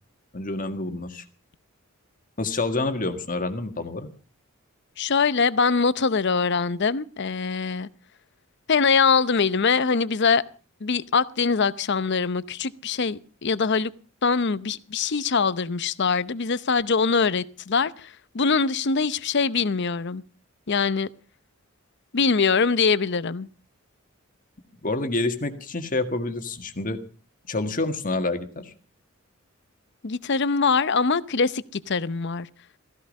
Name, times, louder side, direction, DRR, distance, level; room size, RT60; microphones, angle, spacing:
voice 1, 0.3-1.2 2.4-4.1 24.8-27.0 27.5-28.7, left 2 dB, 40° left, 1.7 m, -28 dB
voice 2, 5.0-7.9 8.7-10.4 10.8-13.9 14.2-20.2 20.7-21.1 22.1-23.5 30.0-32.5, left 5 dB, 55° left, 0.7 m, -23 dB
15.5 x 15.5 x 5.3 m
head